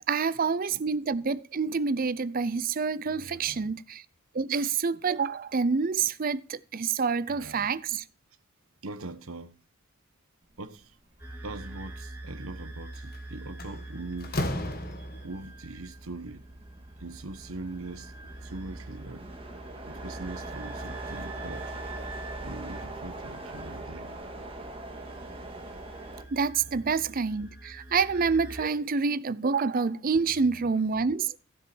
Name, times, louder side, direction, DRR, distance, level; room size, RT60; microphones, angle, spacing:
voice 1, 0.0-4.0 4.3-8.0 26.3-31.3, right 5 dB, 40° right, 0.5 m, -27 dB
voice 2, 3.0-3.8 7.3-7.7 8.8-9.5 10.6-11.0 11.4-14.4 15.2-16.4 17.0-19.3 19.9-21.8 22.4-24.2 26.6-26.9 30.1-30.8, right 2 dB, 80° right, 1.2 m, -42 dB
sound 1, 11.2-28.6, right 2 dB, 10° right, 3.7 m, -44 dB
sound 2, 12.0-26.2, right 2 dB, 25° right, 1.9 m, -43 dB
Slam, 12.9-13.2 13.6-15.5, left 1 dB, 45° left, 1.5 m, -33 dB
15.5 x 7.4 x 4.4 m
head